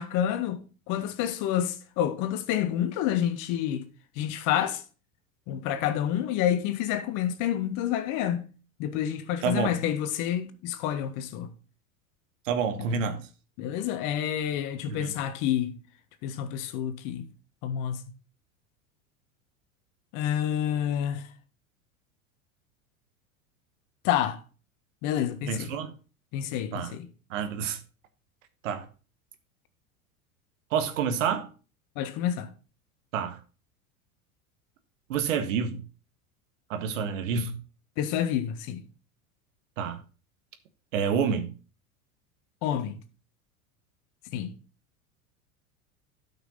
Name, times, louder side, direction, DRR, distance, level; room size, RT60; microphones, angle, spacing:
voice 1, 0.0-3.9 4.2-4.8 5.5-8.5 8.8-11.5 13.6-15.8 16.2-17.3 17.6-18.0 20.1-21.3 24.0-24.4 25.0-25.7 26.3-27.1 31.9-32.5 38.0-38.8 42.6-43.0 44.3-44.5, left 10 dB, 50° left, 1.5 m, -28 dB
voice 2, 9.4-9.7 12.4-13.2 14.9-15.1 25.5-25.9 26.7-26.9 27.3-27.8 28.6-28.9 30.7-31.5 33.1-33.4 35.1-35.8 36.7-37.5 39.8-40.0 40.9-41.5, right 6 dB, 65° right, 1.7 m, -28 dB
12.5 x 6.0 x 4.1 m
figure-of-eight pair, 80°, 41 cm